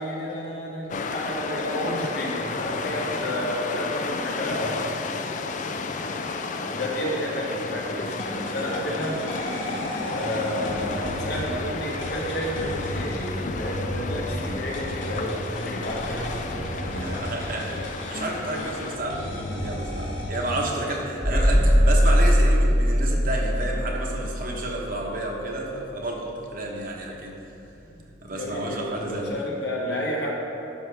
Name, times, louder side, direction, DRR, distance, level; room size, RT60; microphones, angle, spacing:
voice 1, 0.0-5.2 6.5-9.2 10.0-17.2 20.9-21.5 28.2-30.3, equal, 60° left, -3 dB, 1.5 m, -31 dB
sound 1, 0.9-19.0, left 4 dB, 40° left, 0.4 m, -33 dB
sound 2, 8.0-20.7, left 1 dB, 80° left, 1.5 m, -34 dB
voice 2, 16.5-27.4 28.2-29.5, right 1 dB, 50° right, -1 dB, 1.1 m, -31 dB
sound 3, 21.2-25.8 27.6-27.7, equal, 15° left, 0.9 m, -20 dB
12.5 x 5.9 x 3.4 m, 2.9 s
head